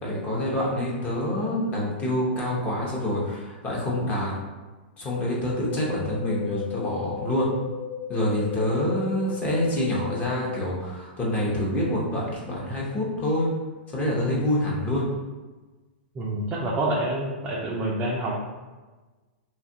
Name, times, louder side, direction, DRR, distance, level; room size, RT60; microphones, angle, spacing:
voice 1, 0.0-4.3 5.0-7.5 8.1-13.5 13.9-15.1, left 1 dB, 25° left, -4 dB, 0.8 m, -26 dB
sound 1, 5.6-10.6, left 8 dB, 40° left, 0.4 m, -35 dB
voice 2, 16.1-18.3, right 1 dB, 20° right, -4 dB, 0.4 m, -27 dB
2.8 x 2.4 x 2.7 m, 1.3 s
hypercardioid pair, 130°, 6 cm